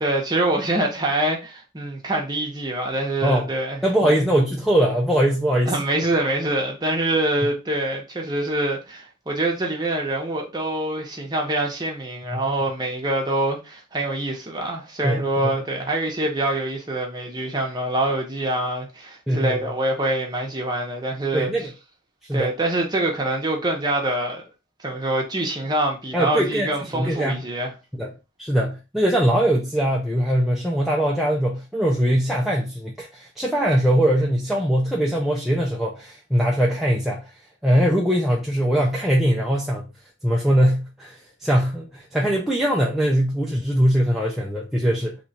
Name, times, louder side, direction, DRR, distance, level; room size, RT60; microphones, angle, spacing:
voice 1, 0.0-4.3 5.7-21.5 22.3-24.4 24.8-27.7, right 1 dB, 20° right, 0.8 m, -25 dB
voice 2, 3.8-5.8 12.3-12.4 15.0-15.6 19.3-19.7 21.3-21.7 22.2-22.5 26.1-27.4 27.9-28.1 28.4-37.2 37.6-39.8 40.2-45.2, equal, ahead, 0.4 m, -21 dB
2.9 x 2.4 x 4.0 m
head